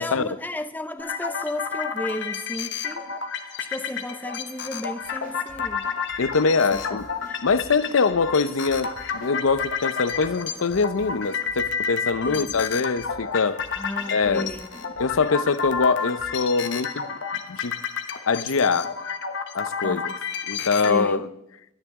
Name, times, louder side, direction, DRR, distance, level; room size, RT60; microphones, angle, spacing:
voice 1, 0.0-3.1 3.6-5.9 6.9-7.0 7.3-7.4 12.2-12.6 13.8-14.7 19.8-20.1 20.8-21.3, left 1 dB, 10° left, 0.5 m, -33 dB
sound 1, 1.0-20.9, left 6 dB, 60° left, 1.2 m, -31 dB
sound 2, 5.0-16.3, right 1 dB, 65° right, 5.1 m, -47 dB
voice 2, 6.2-7.1 7.4-13.6 14.1-14.5 15.0-17.0 17.5-17.8 18.3-18.9 19.5-20.1 20.5-21.3, left 4 dB, 75° left, 0.7 m, -23 dB
25.0 x 10.0 x 3.7 m
head